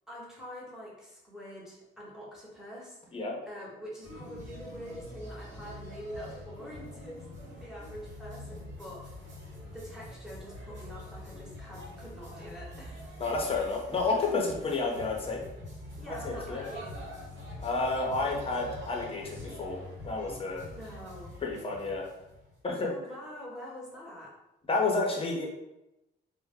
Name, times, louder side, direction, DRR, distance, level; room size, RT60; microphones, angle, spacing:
voice 1, 0.1-9.4 9.6-13.1 16.0-16.9 20.5-21.4 22.8-24.3, equal, 5° right, -5 dB, 1.0 m, -45 dB
sound 1, 4.0-22.6, left 1 dB, 70° right, 1.0 m, -45 dB
voice 2, 13.2-15.4 16.2-16.6 17.6-19.8 20.0-20.6 21.4-22.1 22.6-22.9 24.7-25.4, left 3 dB, 30° left, -1 dB, 0.7 m, -30 dB
2.1 x 2.1 x 3.5 m, 0.93 s
cardioid pair, 90°, 20 cm